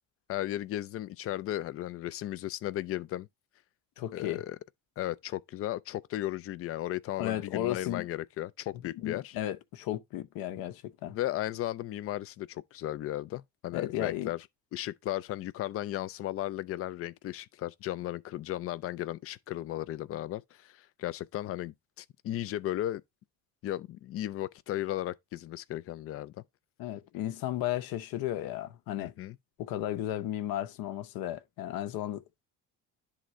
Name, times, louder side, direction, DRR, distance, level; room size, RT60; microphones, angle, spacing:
voice 1, 0.3-3.3 4.1-4.6 5.0-9.4 11.1-14.4 14.7-23.0 23.6-26.3 29.0-29.4, left 14 dB, 40° left, 0.4 m, -35 dB
voice 2, 4.0-4.4 7.2-8.1 9.0-11.2 13.7-14.3 26.8-29.1 29.6-32.4, left 13 dB, 70° left, 0.9 m, -34 dB
11.5 x 3.8 x 3.1 m
cardioid pair, 160°, 36 cm